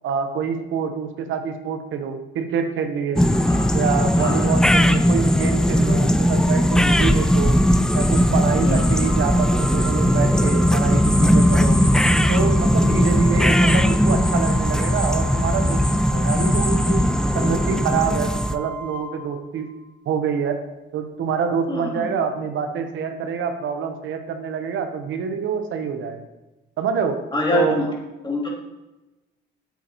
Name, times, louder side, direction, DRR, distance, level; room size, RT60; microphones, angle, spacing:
voice 1, 0.0-3.3 3.7-7.6 7.9-11.8 12.3-17.0 17.3-19.7 20.0-20.6 20.9-26.2 26.8-27.2 27.5-27.9, right 6 dB, 75° right, 7 dB, 0.8 m, -26 dB
sound 1, 3.2-18.6, equal, 5° left, 0.4 m, -18 dB
voice 2, 4.2-4.5 8.6-8.8 21.7-22.1 27.3-27.9 28.2-28.5, left 2 dB, 25° left, -3 dB, 2.6 m, -24 dB
Organ, 9.0-19.8, right 5 dB, 60° left, 1.0 m, -36 dB
8.2 x 8.2 x 2.9 m, 1.0 s
cardioid pair, 90°, 20 cm